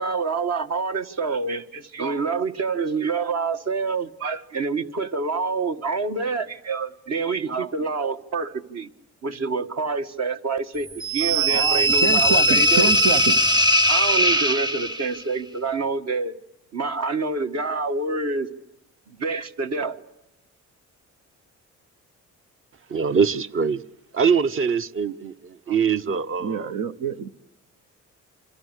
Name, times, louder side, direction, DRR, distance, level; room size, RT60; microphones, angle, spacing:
voice 1, 0.0-8.9 9.2-12.9 13.8-16.3 16.7-18.5 19.1-20.0, right 4 dB, 60° right, 1.8 m, -27 dB
sound 1, 11.0-15.2, equal, 15° right, 0.9 m, -19 dB
voice 2, 11.5-13.4 25.7-25.8 26.4-27.3, right 6 dB, 80° right, 1.2 m, -26 dB
voice 3, 22.9-23.8 24.1-26.7, right 6 dB, 45° right, 1.0 m, -23 dB
27.5 x 26.0 x 8.3 m
cardioid pair, 90°, 30 cm